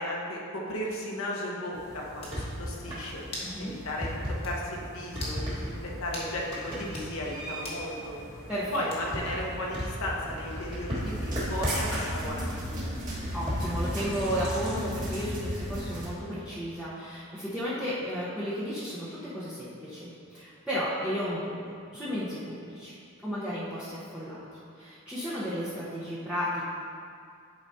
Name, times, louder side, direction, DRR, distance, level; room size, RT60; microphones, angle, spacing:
voice 1, 0.0-3.2 3.6-4.2 4.4-8.1 8.7-12.9, left 1 dB, 80° left, -3 dB, 1.2 m, -35 dB
sound 1, 1.7-14.9, equal, 20° right, 1.7 m, -36 dB
sound 2, 2.2-2.4 3.3-3.6 3.9-4.0 4.4-4.6 5.1-5.4 6.1-6.3 6.8-7.1 7.6-7.8 8.9-9.2, left 1 dB, 25° left, 1.4 m, -40 dB
voice 2, 3.4-3.7 8.5-8.9 13.3-22.9 23.2-24.4 24.8-26.6, equal, 5° right, -12 dB, 0.9 m, -33 dB
sound 3, 11.0-16.1, equal, 35° right, 1.7 m, -35 dB
10.5 x 5.0 x 2.8 m, 2.4 s
head